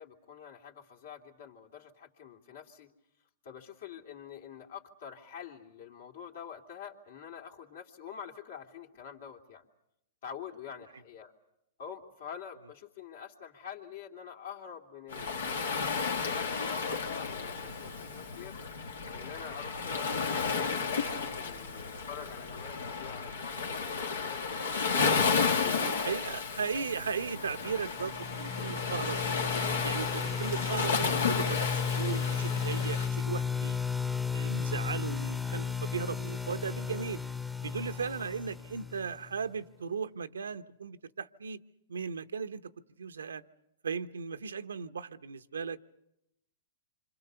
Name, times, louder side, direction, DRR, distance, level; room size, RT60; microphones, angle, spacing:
voice 1, 0.0-2.9 3.4-9.7 10.2-11.3 11.8-15.6 16.0-18.6 19.1-24.4 24.6-25.0 25.6-26.4, left 7 dB, 65° left, 1 dB, 3.1 m, -46 dB
Waves surf, 15.1-33.1, left 5 dB, 85° left, 2.1 m, -32 dB
voice 2, 25.4-29.4 29.8-33.8 34.3-37.2 37.6-41.6 41.9-42.6 43.0-43.4 43.8-45.8, right 6 dB, 90° right, 10 dB, 0.9 m, -37 dB
sound 1, 27.6-39.4, left 6 dB, 5° left, 0.9 m, -34 dB
27.0 x 25.5 x 6.9 m, 0.83 s
hypercardioid pair, 125°, 0 cm